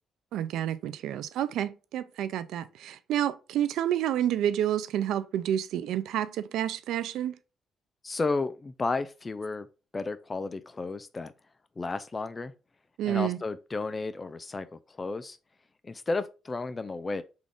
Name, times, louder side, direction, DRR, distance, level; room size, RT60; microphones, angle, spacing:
voice 1, 0.3-7.3 13.0-13.4, right 11 dB, 85° right, 0.3 m, -29 dB
voice 2, 8.0-9.7 9.9-11.3 11.8-12.5 13.1-15.4 15.8-17.2, left 3 dB, 30° left, 0.3 m, -33 dB
3.7 x 2.5 x 3.4 m
cardioid pair, 90°, 0 cm